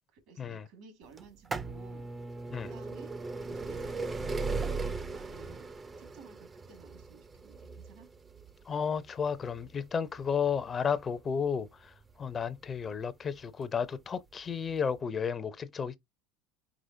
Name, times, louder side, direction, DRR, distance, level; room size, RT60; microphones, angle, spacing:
voice 1, 0.1-2.1 2.6-3.2 3.5-5.7 6.0-8.1, right 6 dB, 65° right, 1.8 m, -54 dB
sound 1, 1.2-12.8 13.6-13.7 14.7-14.8 15.0-15.1, right 3 dB, 20° right, 0.4 m, -38 dB
voice 2, 8.7-16.0, left 6 dB, 30° left, 0.5 m, -33 dB
5.0 x 3.8 x 2.6 m
supercardioid pair, 105°, 0 cm